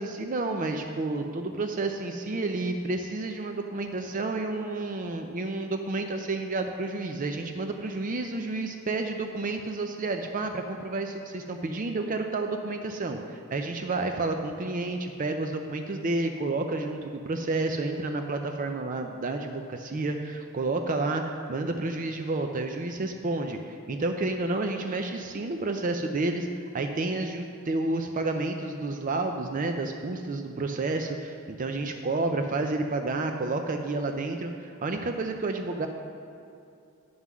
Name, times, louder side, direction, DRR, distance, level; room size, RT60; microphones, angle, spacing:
voice 1, 0.0-26.5 26.7-35.9, right 2 dB, 40° right, 5 dB, 0.5 m, -30 dB
9.5 x 5.7 x 6.1 m, 2.6 s
head